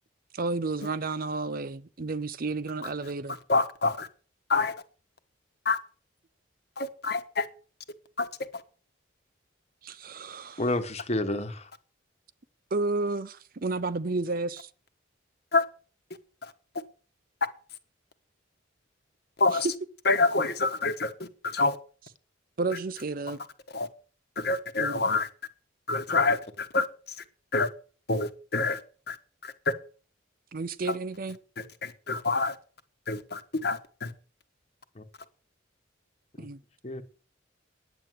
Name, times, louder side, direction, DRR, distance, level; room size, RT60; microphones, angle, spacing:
voice 1, 0.3-3.4 9.8-10.6 12.7-14.7 19.5-19.7 22.6-23.4 24.8-25.0 30.5-31.4 36.4-36.6, right 3 dB, 45° right, 0.6 m, -31 dB
voice 2, 3.5-4.1 4.5-4.7 5.6-5.8 6.8-7.5 8.2-8.3 15.5-15.6 16.4-16.5 19.4-19.7 20.1-21.8 23.7-23.9 24.4-25.3 25.9-26.8 27.5-27.7 28.1-28.8 29.1-29.2 29.4-29.5 31.8-32.5 33.1-34.1, left 3 dB, 55° left, 1.3 m, -26 dB
voice 3, 10.6-11.7 35.0-35.1 36.4-36.5 36.8-37.0, left 1 dB, 35° left, 1.3 m, -30 dB
10.0 x 8.0 x 9.3 m
head